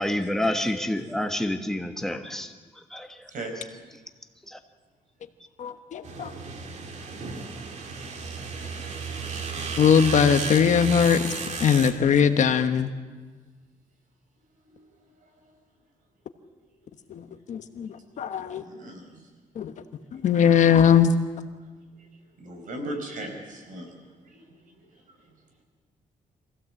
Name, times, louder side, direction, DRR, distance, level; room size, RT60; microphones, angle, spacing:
voice 1, 0.0-2.5 2.9-3.1 4.5-4.6, left 1 dB, 5° left, 5 dB, 1.2 m, -28 dB
voice 2, 5.6-6.3 9.8-11.2 11.6-12.9 17.1-17.9 18.2-18.6 19.6-19.7 20.1-21.1, left 7 dB, 60° left, 8 dB, 1.1 m, -20 dB
sound 1, 6.0-11.9, right 4 dB, 55° right, 2.0 m, -33 dB
voice 3, 18.6-19.0 22.4-23.9, right 1 dB, 70° right, 3 dB, 4.8 m, -36 dB
24.5 x 16.0 x 7.8 m, 1.4 s
wide cardioid pair, 155°, 14 cm